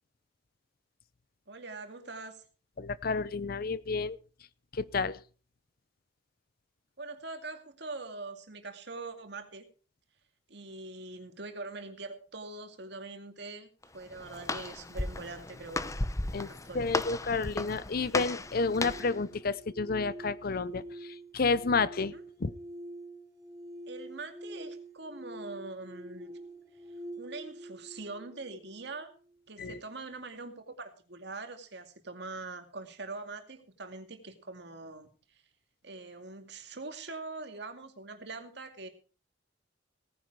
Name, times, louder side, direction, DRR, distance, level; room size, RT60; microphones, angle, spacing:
voice 1, 1.5-2.4 7.0-9.7 10.5-13.7 13.9-15.9 16.4-16.9 22.1-22.2 23.9-26.3 27.2-29.1 29.5-35.4 35.8-38.9, right 3 dB, 65° right, 6 dB, 2.4 m, -43 dB
voice 2, 2.8-4.2 4.7-5.2 16.3-16.5 16.7-22.1 22.4-22.5 29.6-29.8, left 4 dB, 55° left, 18 dB, 0.7 m, -30 dB
Walk footsteps, 13.8-19.2, left 2 dB, 15° left, 0.7 m, -35 dB
sound 1, 18.3-29.4, right 1 dB, 20° right, 4.1 m, -46 dB
18.0 x 9.9 x 4.8 m, 0.38 s
head